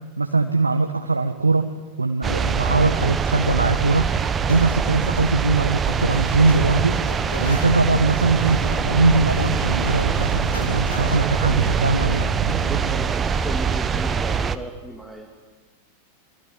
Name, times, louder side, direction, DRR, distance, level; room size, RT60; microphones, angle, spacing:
voice 1, 0.2-1.7 2.0-4.1 4.5-7.0 7.4-12.3, right 3 dB, 80° right, 5 dB, 1.6 m, -21 dB
sound 1, 2.2-14.6, right 6 dB, 20° right, 1.3 m, -23 dB
Zipper (clothing), 4.1-11.4, equal, 75° left, 6.3 m, -36 dB
sound 2, 7.7-13.1, right 12 dB, 55° right, 0.9 m, -31 dB
voice 2, 11.1-11.8 12.4-15.3, right 1 dB, ahead, 1 dB, 2.9 m, -35 dB
27.5 x 23.0 x 9.0 m, 1.3 s
figure-of-eight pair, 90°, 0 cm